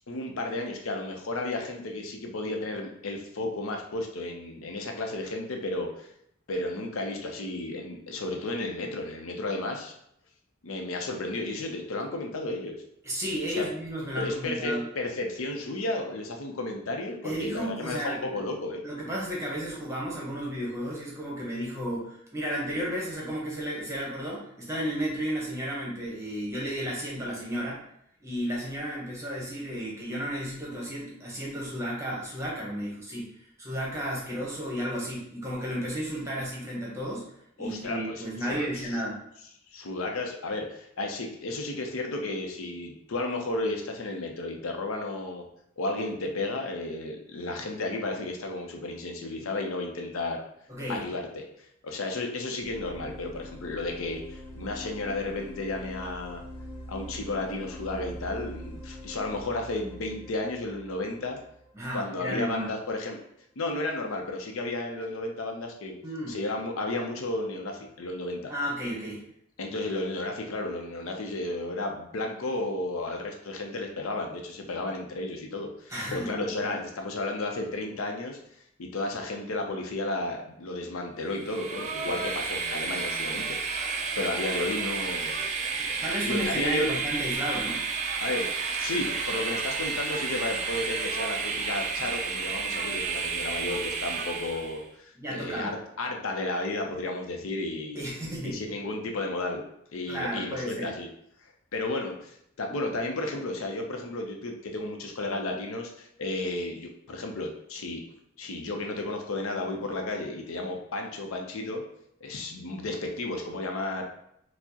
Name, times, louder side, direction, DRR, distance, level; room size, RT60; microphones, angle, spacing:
voice 1, 0.1-6.1 6.5-9.9 10.6-12.7 13.5-13.6 14.2-18.8 37.6-38.9 39.7-45.4 45.8-50.4 50.9-51.4 51.8-56.4 56.9-61.4 61.9-63.2 63.6-66.0 66.3-68.5 69.6-78.4 78.8-83.6 84.2-85.3 86.2-86.9 88.2-88.5 88.8-98.0 98.4-99.6 99.9-101.1 101.4-108.0 108.4-111.8 112.2-114.0, left 2 dB, 80° left, 2 dB, 0.6 m, -33 dB
voice 2, 13.0-14.9 17.2-18.3 18.8-27.8 28.2-37.3 37.6-39.2 50.7-51.0 61.7-62.7 66.0-66.4 68.5-69.2 75.9-76.8 85.8-87.9 95.1-95.8 97.9-98.6 100.1-100.9, equal, 15° right, -5 dB, 0.9 m, -33 dB
sound 1, 52.6-62.4, equal, 15° left, 0.8 m, -44 dB
Train, 81.3-94.8, right 5 dB, 35° right, 0.3 m, -31 dB
4.4 x 2.0 x 2.8 m, 0.73 s
head